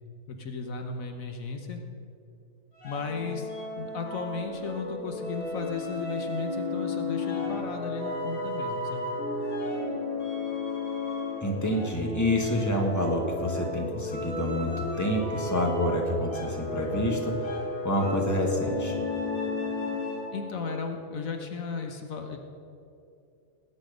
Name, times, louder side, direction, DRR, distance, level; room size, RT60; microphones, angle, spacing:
voice 1, 0.3-1.8 2.8-3.5 3.7-9.1 20.3-22.4, left 5 dB, 75° left, 4 dB, 1.5 m, -35 dB
sound 1, 2.8-20.5, left 2 dB, 90° left, 2.9 m, -33 dB
voice 2, 11.4-14.7 15.0-17.5 17.8-19.0, left 1 dB, 15° left, 0 dB, 1.7 m, -28 dB
19.0 x 8.9 x 5.1 m, 2.6 s
omnidirectional pair, 1.4 m